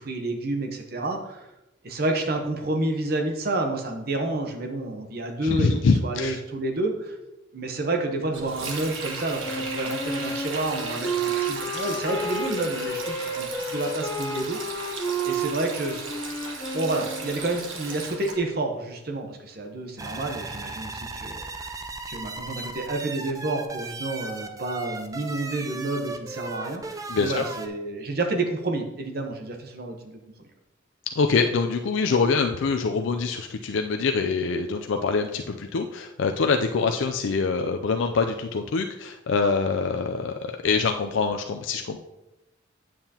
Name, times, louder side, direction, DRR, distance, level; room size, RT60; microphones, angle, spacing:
voice 1, 0.0-1.5 1.8-7.2 7.5-15.0 15.2-16.0 16.7-21.4 22.1-30.2, right 2 dB, 50° right, 3 dB, 0.9 m, -29 dB
voice 2, 5.4-6.4 27.1-27.4 31.2-42.0, left 4 dB, 75° left, 5 dB, 0.4 m, -24 dB
Sink (filling or washing), 8.3-18.4, right 4 dB, 90° right, 1.3 m, -36 dB
Wind instrument woodwind instrument, 9.4-17.6, right 2 dB, 20° left, 0.8 m, -31 dB
sound 1, 20.0-27.7, right 3 dB, 15° right, 0.4 m, -36 dB
8.9 x 7.5 x 2.8 m, 0.95 s
head